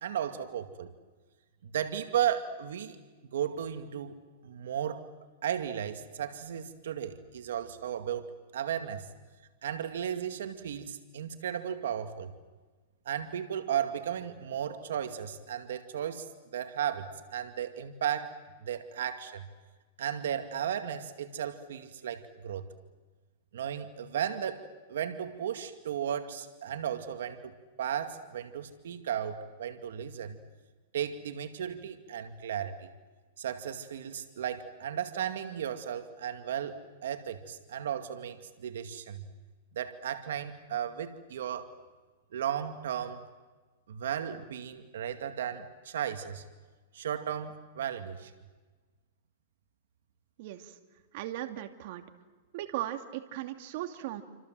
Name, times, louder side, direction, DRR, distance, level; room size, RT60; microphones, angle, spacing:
voice 1, 0.0-0.9 1.6-3.0 3.3-5.1 5.4-8.2 8.5-9.1 9.6-12.3 13.1-19.5 20.0-22.7 23.5-27.5 27.8-30.4 30.9-32.9 33.4-39.3 39.7-41.7 42.3-43.2 43.9-46.4 46.9-48.3, right 9 dB, 80° right, 8 dB, 2.2 m, -35 dB
voice 2, 50.4-50.8 51.1-52.0 52.5-54.2, right 13 dB, 55° right, 6 dB, 2.5 m, -37 dB
29.0 x 26.5 x 7.8 m, 1.3 s
hypercardioid pair, 150°, 0 cm